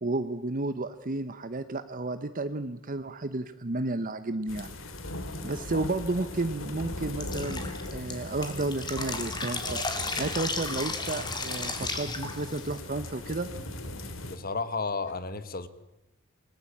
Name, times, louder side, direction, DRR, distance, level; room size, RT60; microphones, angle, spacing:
voice 1, 0.0-4.8 5.4-7.6 7.9-9.8 10.2-13.5, right 2 dB, 40° right, 11 dB, 1.0 m, -32 dB
sound 1, 4.5-14.4, left 1 dB, 70° left, 2.9 m, -39 dB
voice 2, 5.6-5.9 14.2-15.7, left 4 dB, 45° left, 13 dB, 1.5 m, -33 dB
Drip, 7.2-12.8, left 3 dB, 20° left, 3.4 m, -34 dB
sound 2, 8.4-14.5, right 3 dB, 65° right, 2.1 m, -49 dB
28.0 x 20.0 x 8.6 m, 0.96 s
head